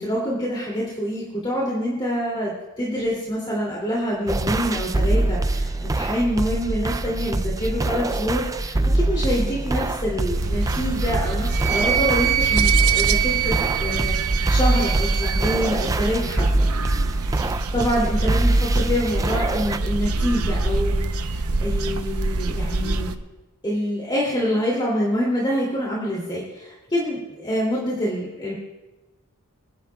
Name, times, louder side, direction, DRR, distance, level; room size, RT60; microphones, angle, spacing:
voice 1, 0.0-16.7 17.7-23.1 23.6-28.5, equal, 20° left, -5 dB, 2.7 m, -26 dB
sound 1, 4.3-19.8, right 2 dB, 15° right, 0.3 m, -24 dB
sound 2, 10.3-23.2, right 2 dB, 85° right, 0.8 m, -27 dB
Wind instrument woodwind instrument, 11.5-15.6, right 12 dB, 55° right, 2.4 m, -24 dB
25.5 x 11.0 x 2.3 m, 1.1 s
head